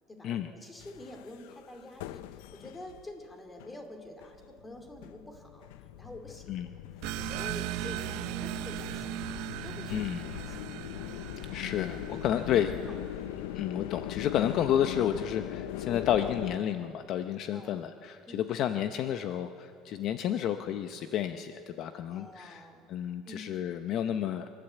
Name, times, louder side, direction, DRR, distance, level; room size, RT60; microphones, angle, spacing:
voice 1, 0.1-5.7 6.0-6.5 7.2-9.3 9.6-10.0 10.3-10.8 11.5-11.7 12.1-12.2 12.9-13.3 17.5-17.7 18.3-18.4 22.1-22.8 23.3-23.4, left 2 dB, 15° left, 4 dB, 2.6 m, -47 dB
sound 1, 0.8-3.1 3.6-3.7 4.2-16.6, left 15 dB, 85° left, 0.5 m, -41 dB
sound 2, 7.0-13.3, right 14 dB, 70° right, 0.6 m, -38 dB
voice 2, 9.9-10.2 11.5-12.7 13.6-24.5, left 10 dB, 50° left, 9 dB, 0.7 m, -31 dB
27.0 x 12.0 x 8.2 m, 2.8 s
cardioid pair, 145°, 0 cm